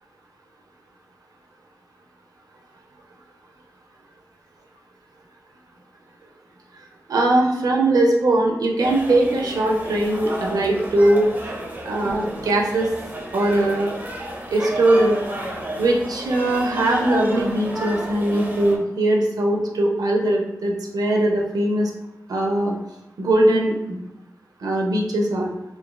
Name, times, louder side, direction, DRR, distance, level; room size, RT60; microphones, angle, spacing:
voice 1, 7.1-11.3 11.8-12.9 13.3-13.9 14.5-15.2 15.8-21.9 22.3-22.8 23.2-24.0 24.6-25.5, right 1 dB, 75° right, 0 dB, 0.5 m, -20 dB
sound 1, 8.8-18.8, equal, 30° right, 0.6 m, -32 dB
2.8 x 2.5 x 2.2 m, 0.90 s
cardioid pair, 50°, 6 cm